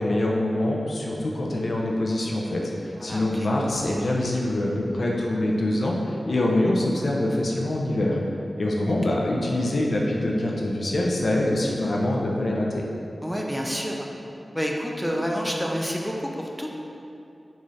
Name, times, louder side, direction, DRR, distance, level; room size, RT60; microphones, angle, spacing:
voice 1, 0.0-8.2 8.6-12.8, left 1 dB, 70° left, -2 dB, 0.4 m, -24 dB
voice 2, 3.0-3.5 8.9-9.0 13.2-14.1 14.5-16.7, equal, ahead, -1 dB, 0.4 m, -29 dB
4.0 x 2.4 x 3.1 m, 2.7 s
cardioid pair, 50°, 0 cm